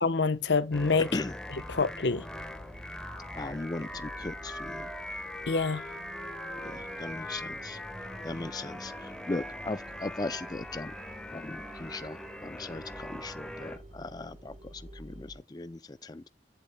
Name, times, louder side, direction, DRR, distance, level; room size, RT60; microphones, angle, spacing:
voice 1, 0.0-1.1 1.7-2.2 5.5-5.8, left 4 dB, 85° left, 0.9 m, -26 dB
sound 1, 0.7-13.8, left 1 dB, 5° left, 1.3 m, -41 dB
sound 2, 1.5-15.4, right 1 dB, 45° right, 4.4 m, -52 dB
voice 2, 3.3-4.9 6.6-7.8 8.2-10.9 11.3-16.3, left 2 dB, 25° left, 0.4 m, -38 dB
10.5 x 8.4 x 2.2 m
head